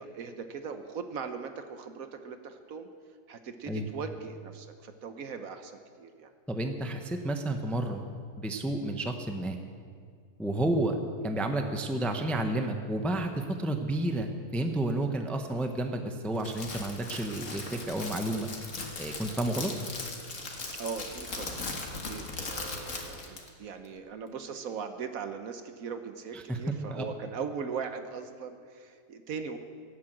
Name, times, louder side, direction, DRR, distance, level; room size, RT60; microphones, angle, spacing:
voice 1, 0.0-2.9 3.3-6.3 6.8-6.9 20.7-21.6 21.9-29.6, right 6 dB, 65° right, 8 dB, 1.2 m, -39 dB
voice 2, 6.5-8.0 8.4-9.6 10.4-11.0 11.2-18.5 19.0-19.7 26.3-27.0, right 1 dB, ahead, 5 dB, 0.7 m, -31 dB
Crackle, 16.3-23.5, left 3 dB, 50° left, 2.0 m, -39 dB
17.5 x 8.5 x 7.8 m, 2.1 s
omnidirectional pair, 1.7 m